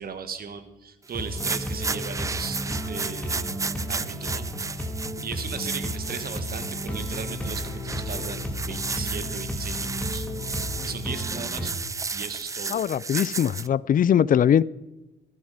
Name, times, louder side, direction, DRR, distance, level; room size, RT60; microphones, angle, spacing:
voice 1, 0.0-4.9 5.2-11.7 12.1-12.8, right 6 dB, 50° right, 1.6 m, -37 dB
sound 1, 1.1-11.7, equal, 5° left, 2.6 m, -33 dB
sound 2, 1.2-13.7, right 4 dB, 15° right, 0.3 m, -33 dB
voice 2, 12.7-14.6, left 9 dB, 45° left, 0.4 m, -21 dB
15.0 x 11.0 x 5.0 m
cardioid pair, 90°, 20 cm